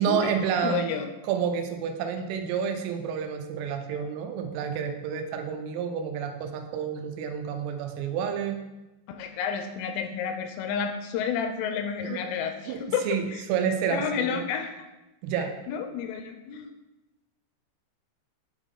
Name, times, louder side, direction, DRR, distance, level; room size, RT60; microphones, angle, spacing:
voice 1, 0.0-0.9 1.2-8.6 12.0-12.2 12.7-12.8 13.1-14.4 15.2-15.5, right 7 dB, 85° right, 5 dB, 3.3 m, -29 dB
voice 2, 0.6-1.1 9.1-13.4 13.9-14.7 15.7-16.7, left 7 dB, 85° left, 7 dB, 2.9 m, -30 dB
9.0 x 3.6 x 3.6 m, 1.0 s
omnidirectional pair, 5.8 m